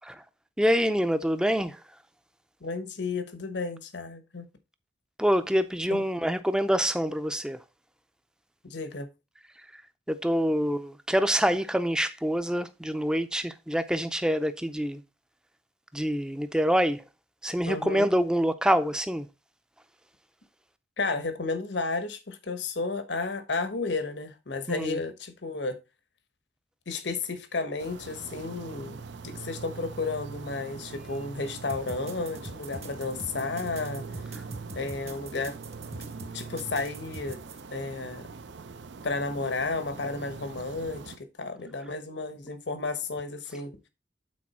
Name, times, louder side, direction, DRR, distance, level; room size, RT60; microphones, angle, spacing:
voice 1, 0.6-1.8 5.2-7.6 10.1-15.0 15.9-17.0 17.4-19.3 24.7-25.0, equal, 5° right, 0.5 m, -26 dB
voice 2, 2.6-4.5 5.9-6.0 8.6-9.1 17.7-18.1 21.0-25.8 26.9-34.0 34.7-35.6 36.3-37.4 37.7-38.3 39.0-43.7, left 3 dB, 75° left, 1.1 m, -32 dB
sound 1, 27.8-41.2, right 4 dB, 75° right, 0.6 m, -42 dB
sound 2, 31.7-37.6, right 2 dB, 35° right, 1.0 m, -43 dB
8.6 x 4.3 x 4.2 m
head